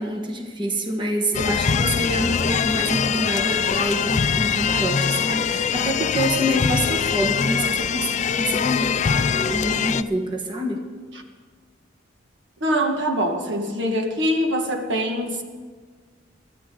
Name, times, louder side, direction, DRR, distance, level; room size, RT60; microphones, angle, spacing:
voice 1, 0.0-10.9, equal, 25° right, 2 dB, 1.4 m, -26 dB
sound 1, 1.3-10.0, left 6 dB, 40° left, 0.4 m, -23 dB
voice 2, 12.6-15.4, equal, 70° right, 4 dB, 1.6 m, -23 dB
22.5 x 14.0 x 3.8 m, 1.5 s
head